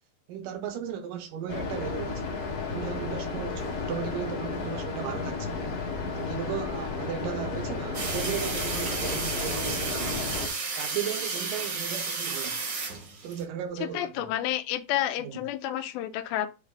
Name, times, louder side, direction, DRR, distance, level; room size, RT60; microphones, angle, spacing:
voice 1, 0.3-2.3 2.7-5.7 6.2-10.3 10.8-12.6 13.2-14.3 15.2-15.4, right 9 dB, 75° right, 2.2 m, -36 dB
sound 1, 1.5-10.5, left 4 dB, 50° left, 2.1 m, -33 dB
sound 2, 7.9-13.4, right 4 dB, 50° right, 1.4 m, -32 dB
voice 2, 13.8-16.5, left 12 dB, 85° left, 2.5 m, -30 dB
8.1 x 3.2 x 3.6 m
omnidirectional pair, 4.3 m